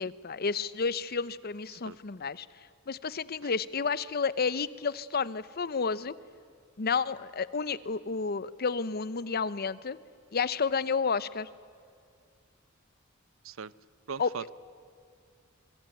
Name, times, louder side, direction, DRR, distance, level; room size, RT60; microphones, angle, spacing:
voice 1, 0.0-2.5 2.9-6.1 6.8-10.0 10.3-11.5 14.2-14.3, left 5 dB, 50° left, 17 dB, 0.8 m, -31 dB
voice 2, 14.1-14.5, right 6 dB, 75° right, 18 dB, 0.7 m, -39 dB
26.5 x 23.0 x 9.1 m, 2.3 s
head